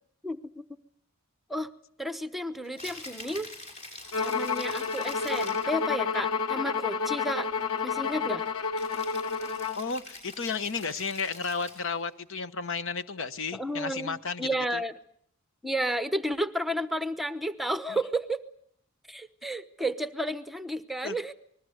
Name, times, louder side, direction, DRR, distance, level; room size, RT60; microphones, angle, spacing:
voice 1, 0.2-0.6 1.5-1.7 2.0-3.5 4.2-7.5 7.8-8.4 13.5-14.9 15.6-18.4 19.1-21.3, right 1 dB, ahead, 11 dB, 0.9 m, -32 dB
Rattle (instrument), 2.6-5.8 8.8-12.0, left 2 dB, 35° left, 6.5 m, -45 dB
Bowed string instrument, 4.1-9.9, left 5 dB, 90° left, 1.2 m, -30 dB
voice 2, 9.7-14.8 17.9-18.0 21.0-21.2, left 5 dB, 65° left, 12 dB, 1.1 m, -33 dB
26.5 x 20.5 x 8.0 m, 0.66 s
head